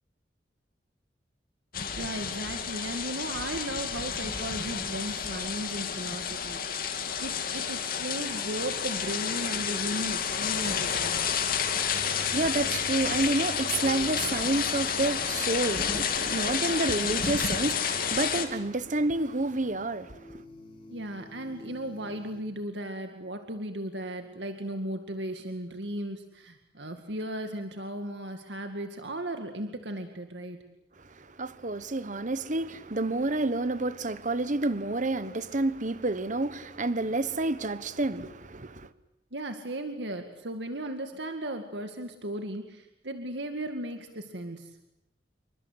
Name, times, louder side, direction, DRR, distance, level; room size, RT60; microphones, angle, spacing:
sound 1, 1.7-18.5, left 7 dB, 55° left, 2.9 m, -30 dB
voice 1, 2.0-6.6 7.2-11.2 20.9-30.6 39.3-44.8, right 1 dB, 80° right, 2.1 m, -36 dB
sound 2, 11.4-22.4, left 1 dB, 30° left, 4.1 m, -52 dB
voice 2, 12.0-20.4 31.0-38.9, right 2 dB, 45° right, 1.2 m, -29 dB
28.0 x 23.5 x 8.1 m
head